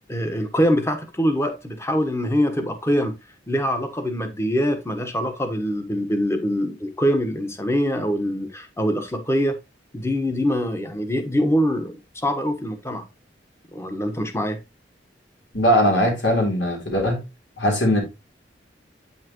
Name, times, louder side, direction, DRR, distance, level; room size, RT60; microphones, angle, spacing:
voice 1, 0.1-3.1 3.5-9.6 9.9-13.0 13.7-14.6, equal, 15° left, 1.2 m, -24 dB
voice 2, 15.5-17.2 17.6-18.0, equal, 80° left, 3.9 m, -20 dB
8.8 x 5.8 x 3.0 m
head